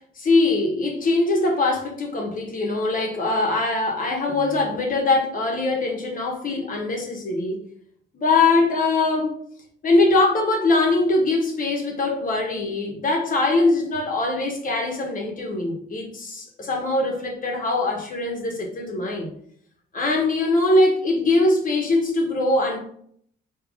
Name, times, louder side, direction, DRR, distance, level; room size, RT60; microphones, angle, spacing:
voice 1, 0.0-7.6 8.1-9.4 9.8-19.3 19.9-22.8, left 2 dB, 45° left, 1 dB, 1.2 m, -22 dB
3.5 x 3.2 x 4.8 m, 0.64 s
cardioid pair, 90°, 20 cm